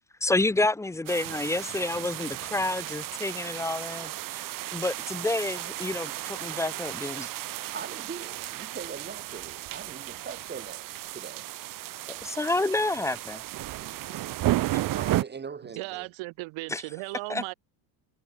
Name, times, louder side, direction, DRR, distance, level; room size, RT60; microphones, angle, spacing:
voice 1, 0.2-4.5 4.7-7.3 12.1-13.4 16.7-16.8 17.3-17.4, left 2 dB, 5° left, 0.4 m, -29 dB
sound 1, 1.1-15.2, right 15 dB, 45° right, 0.7 m, -34 dB
voice 2, 7.6-11.5 11.9-12.2 13.7-16.1, right 6 dB, 20° right, 1.3 m, -42 dB
voice 3, 15.6-17.5, right 23 dB, 70° right, 1.2 m, -37 dB
cardioid pair, 110°, 49 cm